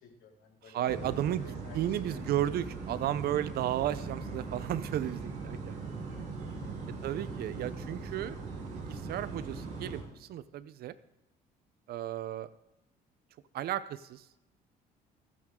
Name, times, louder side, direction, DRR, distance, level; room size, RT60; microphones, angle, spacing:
voice 1, 0.0-1.8 2.1-2.2 5.7-7.0, left 2 dB, 75° left, 2 dB, 3.4 m, -52 dB
voice 2, 0.6-5.8 7.0-8.4 8.7-10.9 11.9-12.5 13.5-14.2, right 12 dB, 65° right, 15 dB, 0.8 m, -34 dB
sound 1, 0.8-10.0, right 4 dB, 45° right, 7.2 m, -40 dB
26.0 x 9.3 x 3.8 m, 0.87 s
cardioid pair, 110°, 17 cm